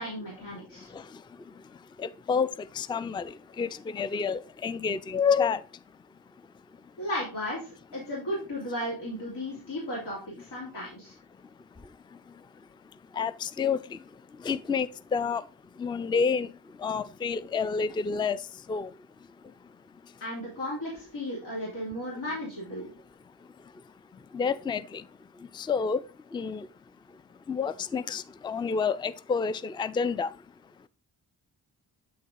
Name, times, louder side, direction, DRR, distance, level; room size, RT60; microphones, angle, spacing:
voice 1, 0.0-0.9 7.0-11.1 20.2-22.9, left 1 dB, 85° left, 2.9 m, -35 dB
voice 2, 0.5-7.0 11.3-20.2 22.7-30.9, left 5 dB, 15° left, 0.3 m, -31 dB
8.5 x 4.0 x 3.7 m
cardioid pair, 65°, 41 cm